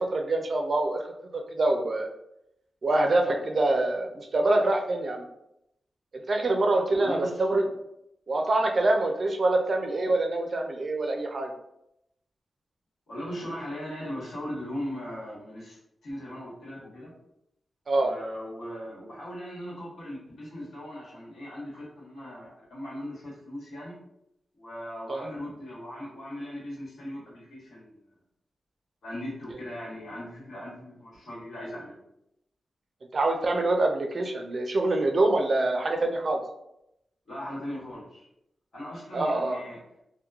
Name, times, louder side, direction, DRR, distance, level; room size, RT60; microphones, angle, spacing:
voice 1, 0.0-2.1 2.8-5.3 6.3-7.6 8.3-11.5 17.9-18.1 25.1-25.3 33.1-36.4 39.1-39.6, right 2 dB, 45° right, 3 dB, 0.3 m, -25 dB
voice 2, 6.9-7.4 13.1-17.1 17.9-24.0 24.5-28.0 29.0-32.0 37.3-38.2 38.7-39.8, equal, 85° left, -7 dB, 1.2 m, -39 dB
2.9 x 2.1 x 2.3 m, 0.81 s
wide cardioid pair, 135°, 0 cm